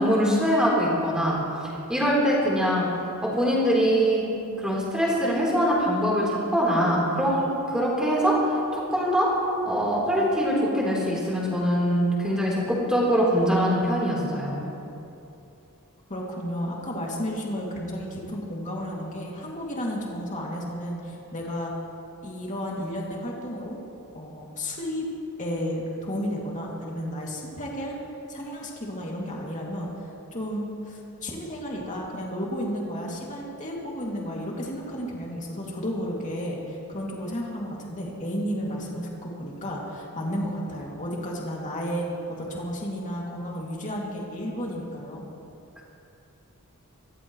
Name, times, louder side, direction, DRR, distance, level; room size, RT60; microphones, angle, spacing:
voice 1, 0.0-1.3 1.9-2.9 3.4-4.2 4.6-8.4 8.7-9.3 9.7-14.6, equal, 5° right, -5 dB, 3.9 m, -23 dB
voice 2, 16.1-21.7 22.2-23.8 24.1-25.0 25.4-28.0 28.3-42.1 42.4-45.2, equal, 35° left, -3 dB, 2.7 m, -32 dB
24.0 x 15.0 x 3.2 m, 2.7 s
head